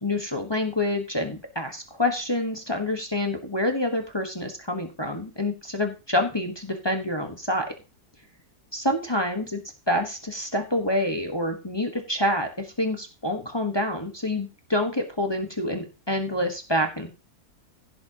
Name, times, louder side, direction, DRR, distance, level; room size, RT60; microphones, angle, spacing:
voice 1, 0.0-7.7 8.7-9.6 9.9-17.1, left 1 dB, 15° left, 4 dB, 1.2 m, -27 dB
16.0 x 7.4 x 2.9 m, 0.31 s
omnidirectional pair, 1.7 m